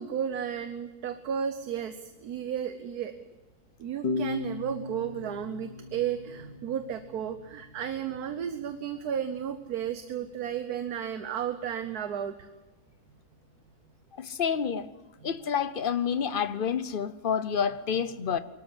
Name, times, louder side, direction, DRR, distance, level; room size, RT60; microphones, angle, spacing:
voice 1, 0.0-3.1 3.8-12.5 15.2-15.3, right 8 dB, 80° right, 1.5 m, -33 dB
sound 1, 4.0-7.5, left 3 dB, 85° left, 2.1 m, -35 dB
voice 2, 14.2-14.9 15.2-18.4, left 7 dB, 45° left, 0.8 m, -28 dB
23.5 x 13.0 x 9.9 m
omnidirectional pair, 1.6 m